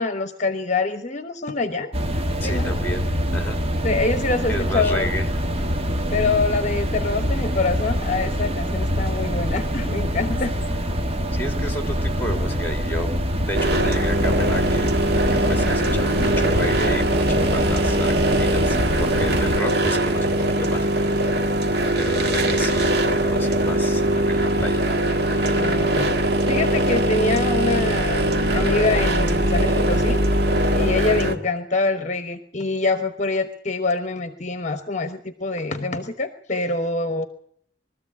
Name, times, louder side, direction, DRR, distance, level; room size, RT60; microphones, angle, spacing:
voice 1, 0.0-1.9 2.4-2.7 3.8-5.1 6.1-10.5 25.5-28.2 28.5-30.2 30.7-37.3, left 3 dB, 40° left, 8 dB, 1.1 m, -25 dB
sound 1, 1.9-19.6, equal, 35° right, 1.4 m, -25 dB
voice 2, 2.4-3.1 3.3-3.6 4.5-5.3 11.3-13.1 13.5-14.9 15.3-20.9 22.0-24.9, equal, 10° left, 5 dB, 2.5 m, -31 dB
sound 2, 13.5-31.3, right 1 dB, 65° right, 1.8 m, -21 dB
22.5 x 13.5 x 8.4 m, 0.67 s
head